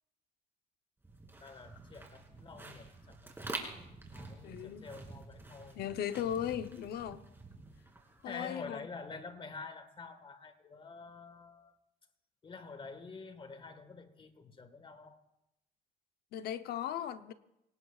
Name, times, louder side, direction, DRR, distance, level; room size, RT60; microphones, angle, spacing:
sound 1, 1.0-8.3, right 2 dB, 15° right, 3.0 m, -47 dB
voice 1, 1.4-3.7 4.1-5.8 8.2-11.8 12.4-15.2, left 4 dB, 30° left, 1.7 m, -48 dB
voice 2, 4.4-4.9 5.7-7.2 8.2-8.9 16.3-17.3, left 10 dB, 70° left, 0.9 m, -37 dB
25.5 x 18.5 x 2.5 m
cardioid pair, 110°, 17 cm